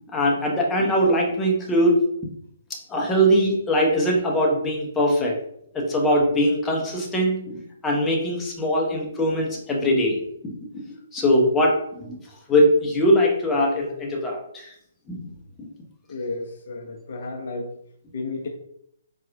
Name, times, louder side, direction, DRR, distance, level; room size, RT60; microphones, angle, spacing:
voice 1, 0.1-2.0 2.7-5.4 5.7-10.5 11.1-12.2 12.5-14.7 15.1-15.3 15.6-15.7, equal, 15° left, -1 dB, 0.8 m, -21 dB
voice 2, 16.1-17.7 18.1-18.5, left 3 dB, 55° left, 2 dB, 0.6 m, -32 dB
4.1 x 2.3 x 2.5 m, 0.72 s
figure-of-eight pair, 130°, 0 cm